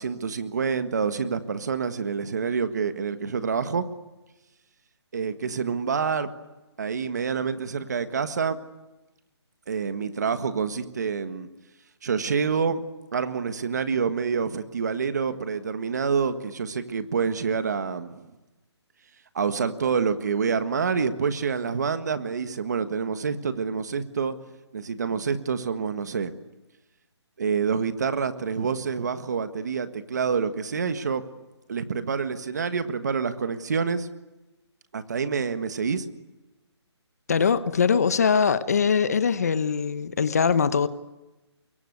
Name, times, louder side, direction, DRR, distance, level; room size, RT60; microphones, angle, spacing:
voice 1, 0.0-3.8 5.1-6.3 6.8-8.6 9.7-11.5 12.0-12.8 13.1-18.3 19.3-24.4 24.7-26.3 27.4-31.3 31.7-34.1 34.9-36.1, right 6 dB, 40° right, 11 dB, 1.6 m, -27 dB
voice 2, 37.3-40.9, left 6 dB, 35° left, 14 dB, 1.0 m, -22 dB
24.5 x 23.0 x 9.6 m, 1.0 s
hypercardioid pair, 175°, 15 cm